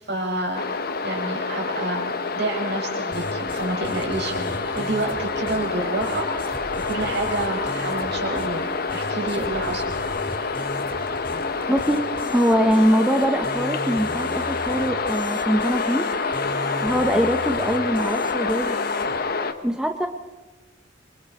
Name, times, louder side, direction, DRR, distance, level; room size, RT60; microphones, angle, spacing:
voice 1, 0.1-0.6 1.0-10.0, right 2 dB, 60° right, 1 dB, 5.5 m, -29 dB
sound 1, 0.5-19.5, left 4 dB, 50° left, 1.2 m, -27 dB
sound 2, 3.1-19.2, equal, 25° left, 4.2 m, -38 dB
voice 2, 11.7-12.0 12.3-16.1 16.8-18.8 19.6-20.1, equal, 5° right, 5 dB, 0.8 m, -22 dB
26.5 x 25.0 x 4.3 m, 1.2 s
head